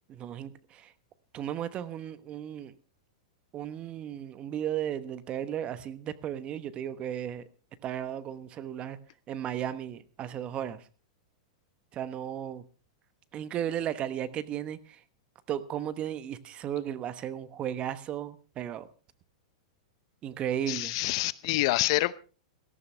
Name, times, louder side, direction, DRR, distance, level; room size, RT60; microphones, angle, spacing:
voice 1, 0.1-0.9 1.3-2.7 3.5-7.4 7.8-9.0 9.3-10.8 11.9-12.6 13.3-15.0 15.5-18.9 20.2-20.9, right 10 dB, 30° right, 14 dB, 1.1 m, -35 dB
voice 2, 20.7-22.1, left 18 dB, 55° left, 18 dB, 0.7 m, -27 dB
18.0 x 13.5 x 3.3 m, 0.35 s
hypercardioid pair, 120°, 3 cm